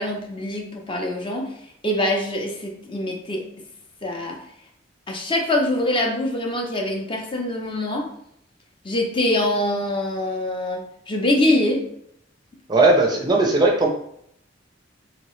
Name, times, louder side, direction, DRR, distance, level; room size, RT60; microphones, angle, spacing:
voice 1, 0.0-1.5 1.8-3.5 4.0-4.4 5.1-8.1 8.8-11.9, left 1 dB, 25° left, 1 dB, 0.5 m, -24 dB
voice 2, 12.7-13.9, right 2 dB, 20° right, 0 dB, 0.4 m, -17 dB
3.0 x 2.8 x 3.1 m, 0.72 s
head